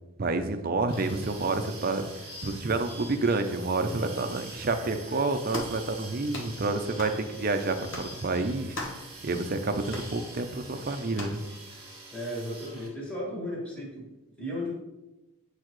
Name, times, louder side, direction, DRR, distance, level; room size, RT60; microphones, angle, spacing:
voice 1, 0.2-8.8 9.2-11.4, right 3 dB, 40° right, 8 dB, 0.5 m, -29 dB
sound 1, 0.9-12.9, right 2 dB, 25° right, 1.8 m, -45 dB
sound 2, 5.5-5.8 6.3-6.5 7.0-7.2 7.9-8.1 8.7-9.1 9.9-10.1 11.1-11.4, left 2 dB, 60° left, 1.0 m, -37 dB
voice 2, 12.1-14.1 14.4-14.8, left 1 dB, 5° left, -6 dB, 2.0 m, -35 dB
8.6 x 4.8 x 3.1 m, 1.0 s
head